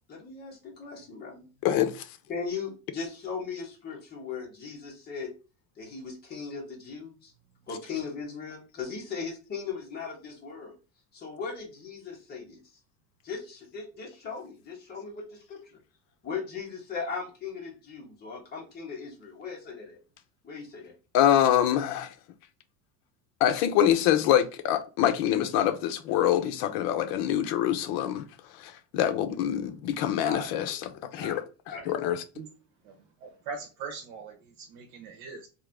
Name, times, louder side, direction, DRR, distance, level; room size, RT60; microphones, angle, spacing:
voice 1, 0.1-1.5 2.3-5.3 5.8-7.3 7.7-10.7 11.1-12.6 13.2-15.8 16.2-20.0 20.4-20.9 30.2-31.4 31.7-31.9, left 5 dB, 25° left, 1.6 m, -38 dB
voice 2, 1.6-2.0 21.1-22.1 23.4-28.2 28.6-30.8 31.1-31.4 31.9-32.2, left 11 dB, 65° left, 0.7 m, -25 dB
voice 3, 33.2-35.5, right 4 dB, 80° right, 1.1 m, -41 dB
3.6 x 2.9 x 3.5 m
cardioid pair, 165°, 39 cm